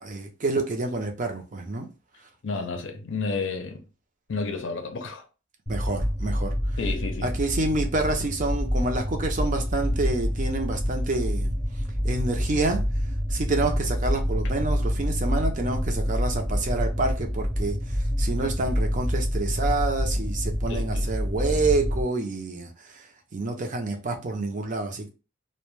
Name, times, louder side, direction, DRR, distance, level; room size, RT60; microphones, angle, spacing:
voice 1, 0.0-1.9 5.7-6.5 7.2-11.5 12.0-12.8 13.3-17.8 18.2-22.7 23.3-25.1, right 2 dB, 40° right, 0.5 m, -28 dB
voice 2, 2.4-3.8 4.3-5.3 6.8-7.3 20.7-21.1, left 4 dB, 65° left, 0.5 m, -31 dB
sound 1, 5.7-22.0, equal, 5° left, 0.6 m, -27 dB
2.2 x 2.1 x 3.1 m
head